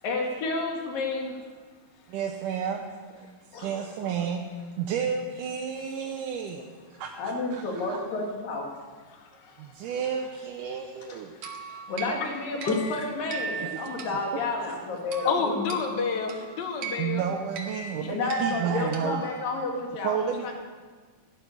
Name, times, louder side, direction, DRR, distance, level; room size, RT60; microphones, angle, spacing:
voice 1, 0.0-1.4 3.5-3.9 7.2-8.7 11.1-11.2 11.7-15.5 18.1-20.5, left 3 dB, 85° left, 1 dB, 3.9 m, -31 dB
voice 2, 2.1-2.8 3.1-4.4 4.8-6.7 7.0-7.6 7.9-8.0 9.6-11.3 14.3-14.4 17.0-19.2 20.0-20.5, right 7 dB, 75° right, 2 dB, 2.4 m, -31 dB
sound 1, 11.4-19.8, right 5 dB, 55° right, 1.9 m, -40 dB
voice 3, 15.3-17.2, left 5 dB, 40° left, 4 dB, 1.7 m, -28 dB
16.5 x 12.0 x 6.8 m, 1.5 s
omnidirectional pair, 3.9 m